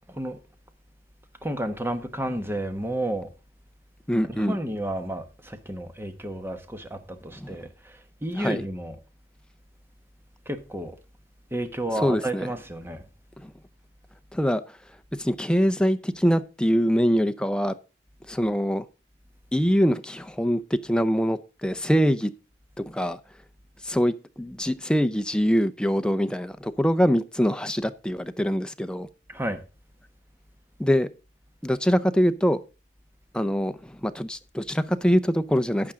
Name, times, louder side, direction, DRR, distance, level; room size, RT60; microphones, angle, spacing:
voice 1, 0.1-0.4 1.4-3.3 4.2-9.0 10.4-11.0 11.5-13.0 29.3-29.6, right 1 dB, 15° right, 1.2 m, -31 dB
voice 2, 4.1-4.6 7.4-7.6 8.3-8.6 12.0-12.5 13.4-13.5 14.3-14.6 15.2-17.7 18.3-18.9 19.5-22.3 22.8-23.2 23.8-29.1 30.8-31.1 31.6-32.6 33.3-35.9, equal, 5° left, 0.6 m, -24 dB
12.0 x 8.6 x 3.7 m
head